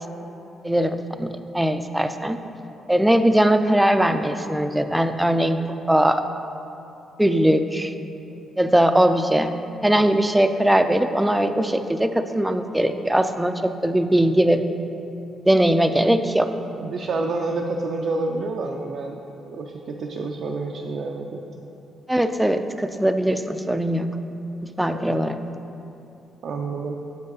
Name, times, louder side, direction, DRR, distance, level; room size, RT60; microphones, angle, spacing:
voice 1, 0.6-2.4 2.9-5.6 5.9-6.2 7.2-7.9 8.6-9.5 9.8-14.6 15.5-16.5 22.1-24.1 24.6-25.4, right 1 dB, 10° right, 9 dB, 0.4 m, -20 dB
voice 2, 16.8-21.4 24.9-25.0 26.4-26.9, right 3 dB, 65° right, 0 dB, 0.4 m, -28 dB
7.1 x 5.3 x 4.0 m, 2.8 s
supercardioid pair, 60°, 0 cm